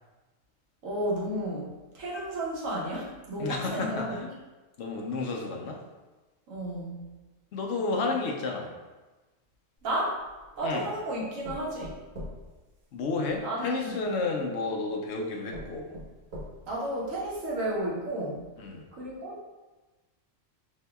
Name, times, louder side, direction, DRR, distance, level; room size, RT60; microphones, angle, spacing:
voice 1, 0.8-4.3 6.5-7.1 9.8-10.2 10.6-12.0 13.4-14.0 16.7-18.4 18.9-19.4, right 1 dB, 80° right, -4 dB, 1.4 m, -32 dB
voice 2, 3.4-4.2 4.8-5.8 7.5-8.7 10.6-10.9 12.9-15.9 18.6-18.8, left 3 dB, 65° left, 1 dB, 0.9 m, -31 dB
sound 1, 9.8-10.7 11.4-13.4 14.4-14.5 15.1-15.2 15.5-16.9 17.3-17.4 17.8-17.9, equal, 55° right, 1.2 m, -43 dB
6.0 x 2.7 x 2.2 m, 1.2 s
omnidirectional pair, 1.3 m